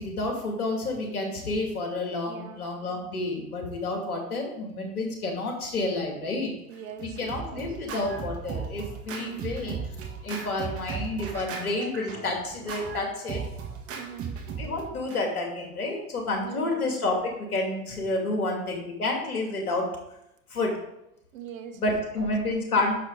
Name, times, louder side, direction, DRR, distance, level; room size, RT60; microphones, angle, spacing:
voice 1, 0.0-6.5 7.0-9.8 10.2-13.4 14.6-19.9 20.5-20.8 21.8-22.9, left 2 dB, 70° left, 1 dB, 2.6 m, -29 dB
voice 2, 2.3-2.7 6.7-7.8 9.2-9.6 13.9-14.4 16.4-16.9 21.3-21.8 22.2-22.3, right 9 dB, 60° right, 6 dB, 1.4 m, -41 dB
Scratching (performance technique), 6.7-15.2, right 6 dB, 30° right, 1.8 m, -37 dB
9.8 x 6.6 x 4.0 m, 0.82 s
figure-of-eight pair, 90°, 45 cm